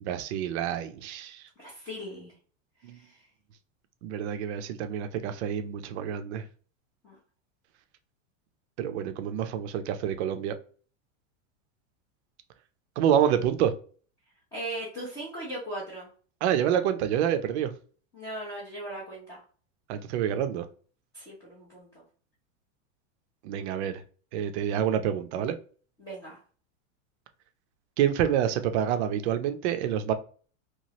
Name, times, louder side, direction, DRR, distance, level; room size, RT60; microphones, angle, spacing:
voice 1, 0.0-1.4 2.8-3.0 4.0-6.4 8.8-10.5 13.0-13.7 16.4-17.7 19.9-20.7 23.4-24.0 24.3-25.5 28.0-30.1, right 9 dB, 55° right, 9 dB, 0.5 m, -27 dB
voice 2, 1.6-2.3 2.8-3.2 7.0-7.2 14.5-16.1 18.1-19.4 21.1-22.0 26.0-26.4, right 1 dB, 10° left, -6 dB, 0.3 m, -38 dB
3.0 x 2.3 x 2.7 m, 0.42 s
supercardioid pair, 165°, 40 cm